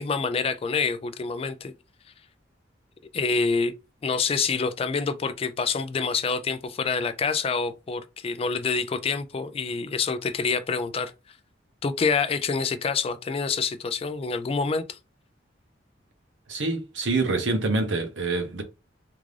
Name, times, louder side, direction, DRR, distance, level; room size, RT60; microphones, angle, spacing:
voice 1, 0.0-1.7 3.1-3.7 4.0-11.1 11.8-15.0, left 5 dB, 30° left, 0.3 m, -27 dB
voice 2, 16.5-18.6, right 3 dB, 70° right, 0.8 m, -26 dB
3.6 x 2.4 x 3.2 m
head